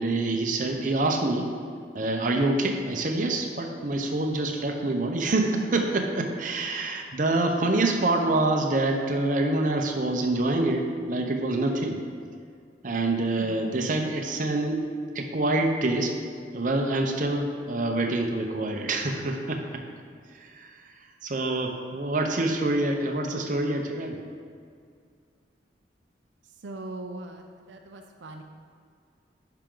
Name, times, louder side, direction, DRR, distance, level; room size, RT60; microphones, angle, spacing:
voice 1, 0.0-1.5 1.9-12.0 12.8-14.8 15.1-16.1 16.5-19.6 20.4-20.7 21.2-24.2, right 2 dB, 45° right, 2 dB, 0.8 m, -26 dB
voice 2, 26.6-28.4, right 2 dB, 85° right, 4 dB, 0.5 m, -40 dB
9.9 x 5.8 x 3.8 m, 2.2 s
head